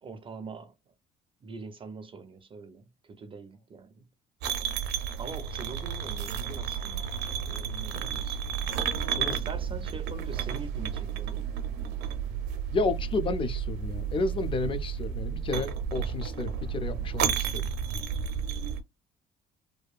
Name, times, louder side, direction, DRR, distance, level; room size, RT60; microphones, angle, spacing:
voice 1, 0.0-0.7 1.4-4.1 5.2-7.1 7.5-8.4 9.3-11.5, right 4 dB, 30° right, 0.4 m, -43 dB
sound 1, 4.4-18.8, right 8 dB, 85° right, 0.5 m, -32 dB
Thunder, 6.4-12.7 13.7-14.0, left 1 dB, 75° left, 0.7 m, -46 dB
voice 2, 12.7-17.7, left 3 dB, 30° left, 0.4 m, -31 dB
2.6 x 2.2 x 2.3 m
cardioid pair, 110°, 17 cm